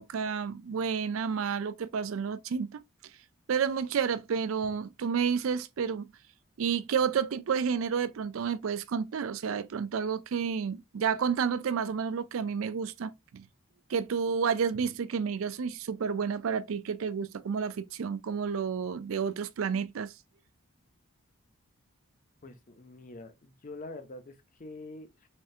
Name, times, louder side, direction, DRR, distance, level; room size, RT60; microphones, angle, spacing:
voice 1, 0.0-2.8 3.5-6.1 6.6-13.5 13.9-20.1, right 6 dB, 65° right, 0.4 m, -30 dB
voice 2, 22.4-24.3 24.6-25.1, left 2 dB, 40° left, 0.5 m, -45 dB
3.4 x 3.2 x 2.7 m
head